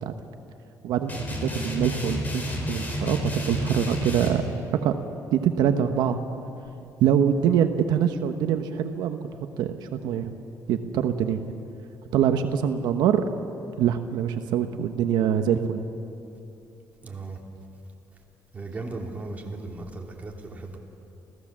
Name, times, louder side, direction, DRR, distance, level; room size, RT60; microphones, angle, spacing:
voice 1, 0.8-2.4 2.7-4.4 4.8-4.9 5.3-6.2 7.0-9.2 9.6-10.3 10.7-11.4 12.1-13.2 13.8-15.8, right 9 dB, 85° right, 7 dB, 1.0 m, -24 dB
sound 1, 1.1-4.3, left 1 dB, 25° left, 4.6 m, -31 dB
voice 2, 17.0-17.4 18.5-20.8, right 3 dB, 20° right, 0 dB, 3.2 m, -36 dB
28.5 x 16.5 x 7.4 m, 2.8 s
cardioid pair, 120°, 7 cm